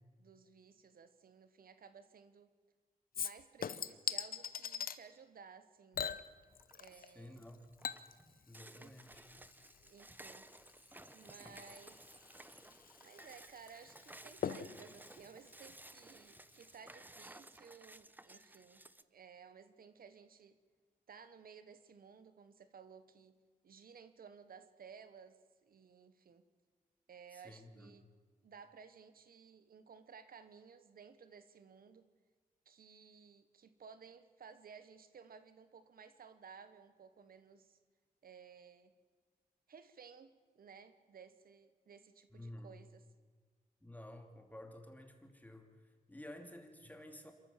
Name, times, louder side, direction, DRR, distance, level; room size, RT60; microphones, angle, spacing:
voice 1, 0.2-2.5 3.2-6.2 6.7-7.4 8.8-8.9 9.8-10.5 11.1-12.0 13.0-20.6 21.1-23.4 23.6-26.5 27.1-28.0 28.4-32.1 32.6-37.8 38.2-38.9 39.7-43.1, right 6 dB, 80° right, 11 dB, 1.1 m, -57 dB
Chink clink / Liquid, 3.1-5.0 5.9-7.1 7.4-16.4 16.7-16.8, left 7 dB, 80° left, 0.7 m, -44 dB
sound 1, 6.6-7.0 7.4-19.0, right 1 dB, 10° right, 0.8 m, -57 dB
voice 2, 6.9-7.7 8.5-9.2 11.4-11.5 27.4-27.9 42.3-42.8 43.8-45.7 46.1-47.3, left 1 dB, 10° left, 5 dB, 2.8 m, -52 dB
26.5 x 14.0 x 7.3 m, 1.6 s
cardioid pair, 70°, 15 cm